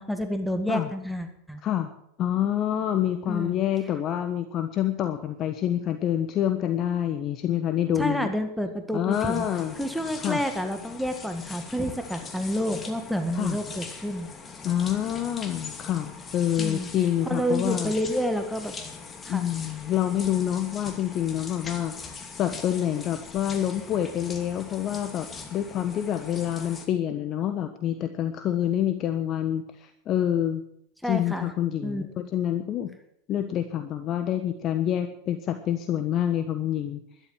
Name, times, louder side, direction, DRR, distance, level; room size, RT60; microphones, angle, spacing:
voice 1, 0.0-1.6 3.3-3.6 8.0-9.5 9.8-14.3 16.6-16.9 17.3-18.7 19.2-19.4 31.0-31.5 31.8-32.0, equal, ahead, 6 dB, 1.9 m, -29 dB
voice 2, 2.2-8.3 8.9-9.7 10.2-10.4 13.3-13.6 14.6-17.9 19.3-30.6 31.1-32.9 33.3-37.0, left 10 dB, 40° left, 8 dB, 1.3 m, -27 dB
sound 1, 9.1-26.9, left 4 dB, 25° left, 2.5 m, -41 dB
12.5 x 12.0 x 7.5 m, 0.70 s
hypercardioid pair, 90°, 0 cm